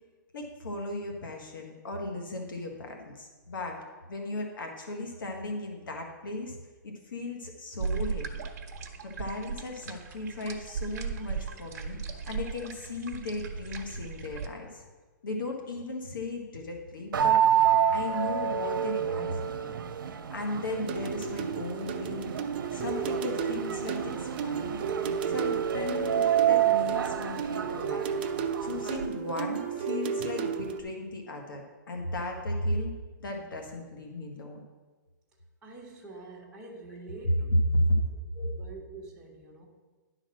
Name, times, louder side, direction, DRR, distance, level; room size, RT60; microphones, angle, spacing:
voice 1, 0.3-3.8 4.1-6.6 6.8-8.4 9.0-12.0 12.3-14.8 15.2-17.5 17.9-19.7 20.3-22.3 22.7-24.8 25.3-28.0 28.6-34.6 37.7-38.0, left 2 dB, 80° left, 2 dB, 1.5 m, -35 dB
sound 1, 7.8-14.5, right 5 dB, 45° right, 1.0 m, -37 dB
sound 2, 17.1-29.0, right 9 dB, 85° right, 0.7 m, -28 dB
sound 3, 20.9-30.8, right 7 dB, 30° right, 0.4 m, -33 dB
voice 2, 35.6-37.5 38.3-39.6, right 2 dB, 5° right, -6 dB, 1.2 m, -45 dB
10.5 x 4.1 x 6.2 m, 1.3 s
hypercardioid pair, 175°, 11 cm